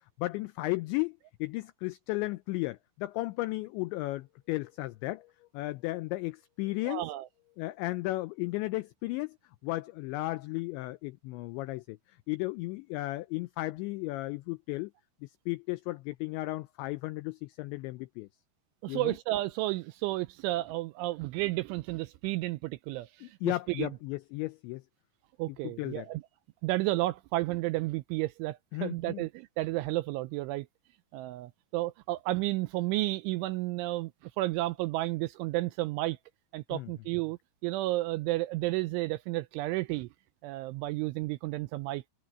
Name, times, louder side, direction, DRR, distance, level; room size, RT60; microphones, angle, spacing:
voice 1, 0.2-5.3 5.5-7.1 7.6-9.4 9.6-12.0 12.3-14.9 15.2-18.3 18.9-19.2 23.2-24.8 25.6-26.1 28.7-29.2 36.7-36.9, left 20 dB, 90° left, 2.5 m, -34 dB
voice 2, 6.9-7.3 18.8-23.9 25.4-26.2 26.6-30.7 31.1-34.1 34.4-36.2 36.5-40.1 40.4-42.0, right 18 dB, 80° right, 2.8 m, -32 dB
omnidirectional pair, 5.9 m